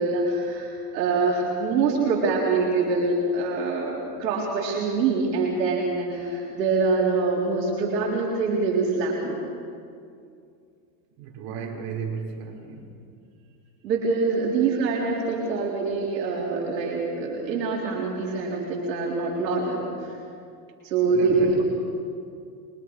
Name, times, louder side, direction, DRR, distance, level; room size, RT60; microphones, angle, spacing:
voice 1, 0.0-9.4 13.8-20.2 20.8-21.6, right 4 dB, 85° right, -3 dB, 4.1 m, -25 dB
voice 2, 11.2-13.0 21.1-21.6, right 6 dB, 55° right, -1 dB, 5.8 m, -35 dB
28.0 x 23.0 x 4.9 m, 2.4 s
supercardioid pair, 110°, 49 cm